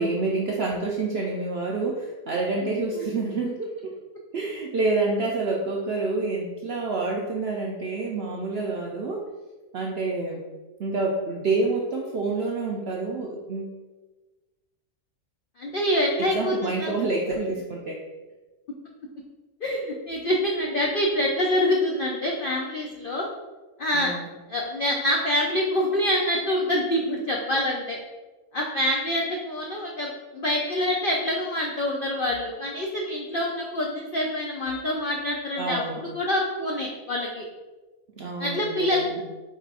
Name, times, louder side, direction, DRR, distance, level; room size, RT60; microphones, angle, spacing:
voice 1, 0.0-3.9 4.3-9.2 9.7-10.4 10.8-13.8 16.2-18.0 23.9-24.3 35.6-36.0 38.2-39.2, right 3 dB, 80° right, -1 dB, 0.5 m, -28 dB
voice 2, 15.6-16.9 19.6-23.3 23.8-24.1 24.5-28.0 28.5-35.8 36.1-37.5 38.4-39.2, left 1 dB, 85° left, -1 dB, 0.4 m, -26 dB
4.6 x 2.4 x 4.6 m, 1.2 s
omnidirectional pair, 1.6 m